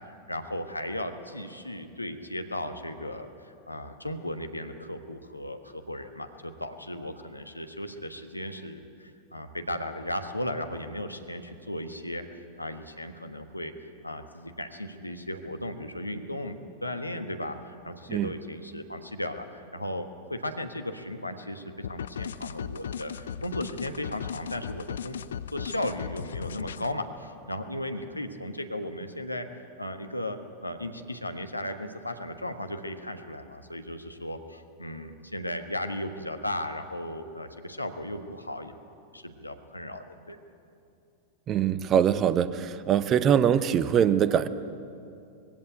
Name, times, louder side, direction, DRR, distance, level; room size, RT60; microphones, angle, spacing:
voice 1, 0.0-25.2 25.5-38.8 39.1-40.4, left 1 dB, 85° left, 7 dB, 1.3 m, -36 dB
sound 1, 21.8-26.9, left 8 dB, 65° left, 0.5 m, -37 dB
voice 2, 41.5-44.5, right 9 dB, 30° right, 14 dB, 0.8 m, -23 dB
20.5 x 16.0 x 9.1 m, 2.6 s
figure-of-eight pair, 90°, 0 cm